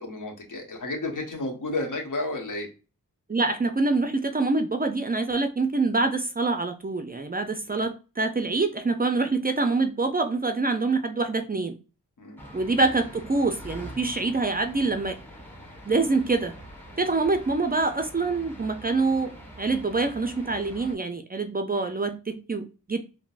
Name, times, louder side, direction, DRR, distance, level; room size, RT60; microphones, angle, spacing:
voice 1, 0.0-2.7 7.6-7.8 12.2-12.4, left 2 dB, 60° left, 1.2 m, -32 dB
voice 2, 3.3-11.8 12.5-15.2 15.9-16.6 17.0-23.0, right 3 dB, 25° right, 0.5 m, -25 dB
sound 1, 12.4-21.0, equal, 5° left, 1.3 m, -44 dB
3.7 x 2.1 x 2.4 m
cardioid pair, 45°, 35 cm